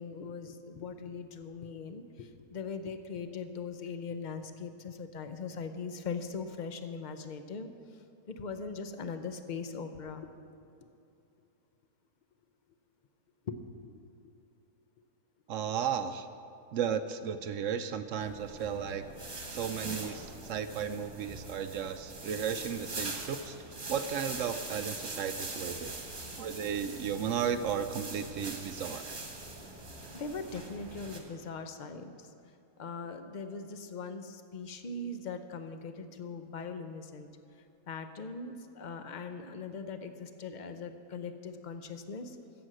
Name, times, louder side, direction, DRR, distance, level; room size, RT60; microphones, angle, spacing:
voice 1, 0.0-7.7 8.3-10.3 13.5-13.6 13.8-14.0 30.1-32.3 32.8-37.3 37.9-42.4, left 4 dB, 45° left, 8 dB, 0.6 m, -40 dB
voice 2, 15.5-16.3 16.7-19.0 19.5-23.6 23.9-26.0 26.4-29.2, right 7 dB, 70° right, 10 dB, 0.8 m, -34 dB
sound 1, 18.2-31.2, right 2 dB, 35° right, 1.7 m, -42 dB
14.5 x 7.1 x 7.7 m, 2.6 s
omnidirectional pair, 1.6 m